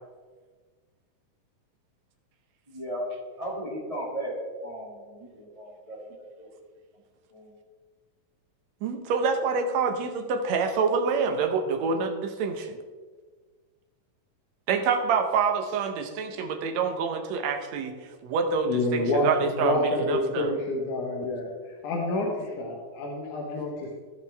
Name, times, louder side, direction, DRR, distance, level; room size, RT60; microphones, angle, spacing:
voice 1, 2.7-3.1 3.4-6.5 7.3-7.5, right 1 dB, 15° right, -4 dB, 1.2 m, -36 dB
voice 2, 8.8-12.8 14.7-17.9 18.2-20.5, right 5 dB, 70° right, 5 dB, 1.9 m, -27 dB
voice 3, 18.7-21.5 21.8-23.9, left 2 dB, 75° left, -1 dB, 2.6 m, -28 dB
16.0 x 5.7 x 3.4 m, 1.4 s
omnidirectional pair, 3.6 m